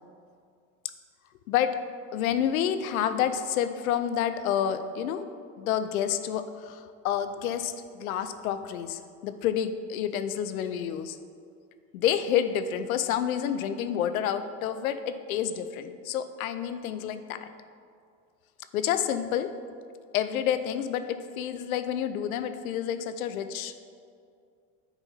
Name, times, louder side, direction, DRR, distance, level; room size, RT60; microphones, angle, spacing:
voice 1, 1.5-1.8 2.1-5.3 5.6-11.2 11.9-17.5 18.7-19.5 20.1-23.8, left 9 dB, 90° left, 11 dB, 0.6 m, -29 dB
9.6 x 4.4 x 5.6 m, 2.3 s
hypercardioid pair, 75°, 41 cm